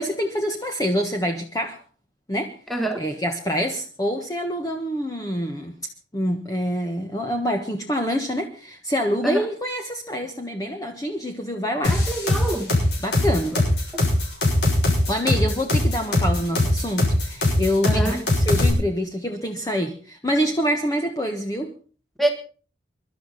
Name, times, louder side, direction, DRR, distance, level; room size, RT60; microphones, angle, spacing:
voice 1, 0.0-1.8 2.3-2.5 3.0-5.8 6.1-12.0 13.0-13.6 15.1-21.7, equal, 20° left, 3 dB, 1.4 m, -26 dB
voice 2, 2.7-3.1 9.2-9.5 11.9-12.7 13.9-14.0 17.8-18.2 22.2-22.3, right 1 dB, ahead, 5 dB, 1.6 m, -25 dB
sound 1, 11.8-18.7, left 2 dB, 60° left, 6.6 m, -21 dB
23.5 x 12.0 x 4.1 m, 0.39 s
head